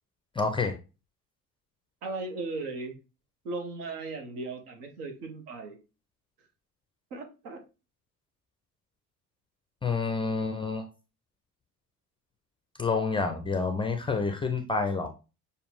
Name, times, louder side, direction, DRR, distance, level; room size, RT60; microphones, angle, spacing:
voice 1, 0.4-0.7 9.8-10.9 12.8-15.1, left 4 dB, 10° left, 0.4 m, -28 dB
voice 2, 2.0-3.0 3.4-5.8 7.1-7.6, right 3 dB, 70° right, 1.1 m, -37 dB
6.7 x 2.3 x 3.2 m
figure-of-eight pair, 60°, 48 cm